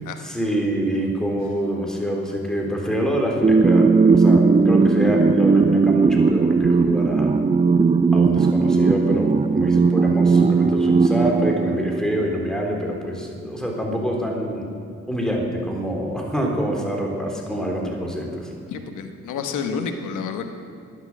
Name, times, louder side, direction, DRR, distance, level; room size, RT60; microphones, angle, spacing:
voice 1, 0.2-7.3 8.1-14.7 15.1-18.5, equal, ahead, 0 dB, 3.5 m, -26 dB
sound 1, 3.4-12.4, right 4 dB, 20° right, 0.5 m, -17 dB
voice 2, 18.7-20.5, left 5 dB, 85° left, 6 dB, 1.2 m, -29 dB
12.0 x 9.8 x 7.8 m, 2.5 s
cardioid pair, 65°, 30 cm